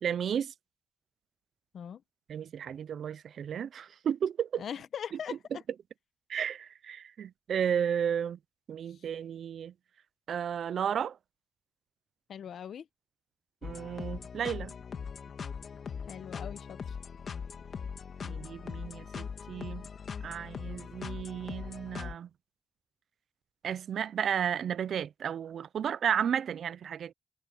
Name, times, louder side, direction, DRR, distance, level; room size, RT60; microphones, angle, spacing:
voice 1, 0.0-0.5 2.3-4.6 6.3-8.4 8.7-9.7 10.3-11.2 13.6-14.7 18.2-19.9 20.2-22.3 23.6-27.1, right 8 dB, 80° right, 0.5 m, -33 dB
voice 2, 4.6-5.4 8.9-9.0 12.3-12.9 16.1-17.0, left 8 dB, 80° left, 0.8 m, -41 dB
sound 1, 13.6-22.1, left 6 dB, 60° left, 2.2 m, -40 dB
wide cardioid pair, 140°, 0 cm